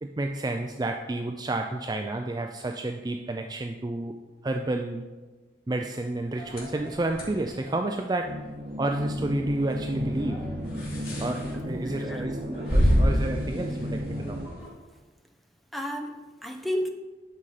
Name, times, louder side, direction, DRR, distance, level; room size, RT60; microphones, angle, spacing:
voice 1, 0.0-4.2 4.4-5.1 5.7-8.4 8.8-10.4 11.2-14.4, right 2 dB, 25° right, 4 dB, 0.4 m, -30 dB
sound 1, 6.4-14.7, equal, 55° left, 2.9 m, -30 dB
sound 2, 8.2-14.5, equal, 50° right, 0.8 m, -33 dB
voice 2, 11.8-12.3 15.7-16.9, equal, ahead, 3 dB, 0.8 m, -32 dB
11.5 x 5.6 x 4.9 m, 1.2 s
head